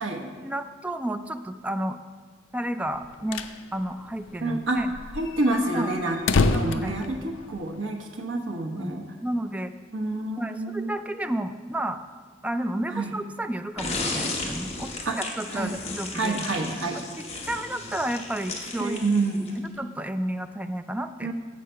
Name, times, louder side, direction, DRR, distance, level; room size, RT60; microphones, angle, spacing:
voice 1, 0.4-2.0 2.5-4.9 5.7-5.9 6.6-7.0 8.7-9.7 10.4-12.0 12.4-16.4 16.9-19.0 19.8-21.3, right 1 dB, 5° right, 9 dB, 0.3 m, -32 dB
sound 1, 2.9-3.6 3.9-4.0 4.2-4.3 4.8-7.8, left 3 dB, 80° left, 0.4 m, -27 dB
voice 2, 4.4-4.8 5.1-6.2 6.5-9.1 9.9-11.0 12.9-13.1 15.0-15.2 15.5-15.8 16.1-17.0 18.8-19.7 21.2-21.3, right 2 dB, 85° right, 2 dB, 1.1 m, -28 dB
sound 2, 13.8-19.7, left 3 dB, 35° left, 1.1 m, -34 dB
7.5 x 6.5 x 5.6 m, 1.5 s
head